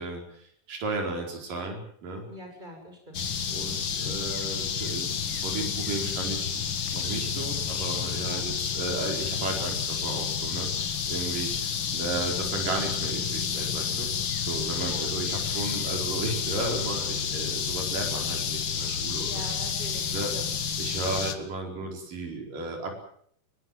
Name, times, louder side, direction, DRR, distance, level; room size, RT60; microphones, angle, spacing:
voice 1, 0.0-2.2 3.4-6.6 6.9-14.1 14.4-19.4 20.1-20.3 20.8-23.1, right 2 dB, 80° right, 2 dB, 6.2 m, -34 dB
voice 2, 2.3-3.2 8.2-8.4 14.8-15.1 19.2-20.5, equal, 10° right, 3 dB, 6.6 m, -43 dB
sound 1, 3.1-21.4, left 7 dB, 45° left, 1.8 m, -30 dB
23.0 x 19.0 x 7.8 m, 0.63 s
omnidirectional pair, 3.8 m